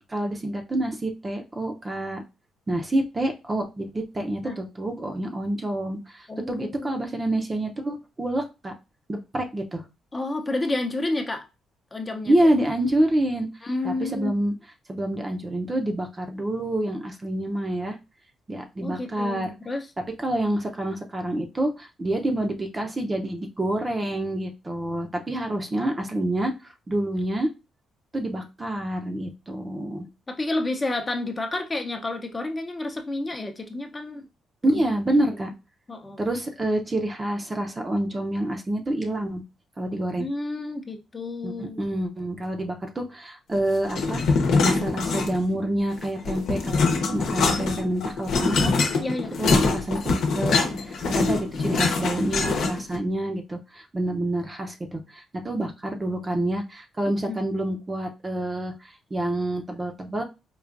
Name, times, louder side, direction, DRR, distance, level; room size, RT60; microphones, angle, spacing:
voice 1, 0.1-2.2 2.7-8.7 9.1-9.8 12.3-13.5 13.8-14.5 14.9-18.0 18.5-19.5 20.2-26.5 26.9-27.5 28.1-30.1 34.6-35.5 36.2-39.4 39.8-40.3 41.4-48.7 49.4-60.2, right 1 dB, 25° right, 4 dB, 0.7 m, -27 dB
voice 2, 6.3-6.9 10.1-11.4 11.9-12.3 13.6-14.3 18.8-19.9 30.3-34.2 34.7-35.0 35.9-36.2 40.2-41.8 49.0-49.3 57.3-57.4, left 2 dB, 25° left, 4 dB, 0.7 m, -30 dB
sound 1, 43.9-45.6 45.9-53.0, left 4 dB, 70° left, 0.9 m, -24 dB
4.6 x 2.4 x 2.5 m, 0.27 s
cardioid pair, 90°, 0 cm